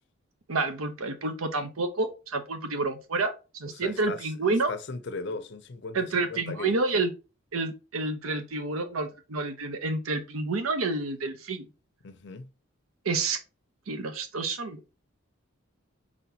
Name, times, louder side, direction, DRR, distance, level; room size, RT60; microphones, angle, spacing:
voice 1, 0.5-4.7 5.9-7.1 7.5-11.7 13.0-13.4 13.9-14.8, right 3 dB, 90° right, 0.8 m, -29 dB
voice 2, 3.7-6.8 12.0-12.5, left 3 dB, 55° left, 0.5 m, -38 dB
4.5 x 4.2 x 2.8 m
head